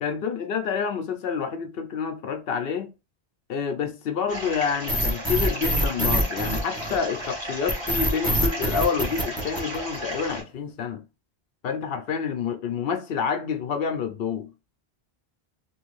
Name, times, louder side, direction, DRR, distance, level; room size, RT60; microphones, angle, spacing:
voice 1, 0.0-2.9 3.5-11.0 11.6-14.5, left 6 dB, 70° left, 0.8 m, -28 dB
sound 1, 4.3-10.4, equal, 25° right, 1.1 m, -34 dB
sound 2, 4.9-7.2 7.7-10.1, right 1 dB, 5° right, 0.6 m, -24 dB
3.0 x 2.5 x 3.1 m
omnidirectional pair, 1.1 m